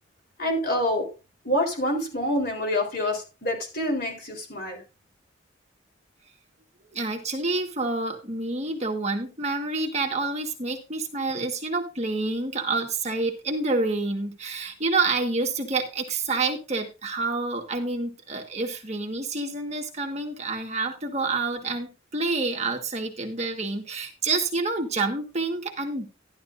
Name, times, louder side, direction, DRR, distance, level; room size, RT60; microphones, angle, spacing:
voice 1, 0.4-1.1 1.4-4.8, left 1 dB, 50° left, 4.0 m, -27 dB
voice 2, 6.9-26.1, right 3 dB, 35° right, 1.6 m, -28 dB
12.0 x 12.0 x 2.6 m
head